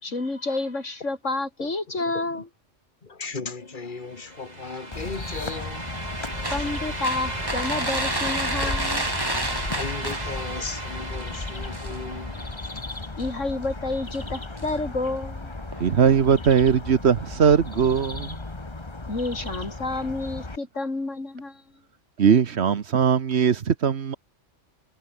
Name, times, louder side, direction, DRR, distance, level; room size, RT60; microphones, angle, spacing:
voice 1, 0.0-2.5 6.5-9.0 13.2-15.5 19.1-21.6, left 2 dB, 80° left, 4.5 m, -29 dB
voice 2, 1.9-2.4 3.0-6.0 6.5-6.7 8.6-8.7 9.4-12.8, left 4 dB, 40° left, 2.2 m, -37 dB
sound 1, 4.0-12.9, right 1 dB, 35° right, 4.1 m, -35 dB
sound 2, 4.9-20.6, left 2 dB, 25° left, 1.6 m, -35 dB
sound 3, 6.4-10.6 11.0-11.2 11.5-12.5 13.2-13.5 14.0-14.7 15.0-15.1 15.6-15.9, right 1 dB, 20° right, 2.6 m, -31 dB
voice 3, 15.8-18.4 22.2-24.1, right 7 dB, 65° right, 1.3 m, -20 dB
omnidirectional pair, 1.3 m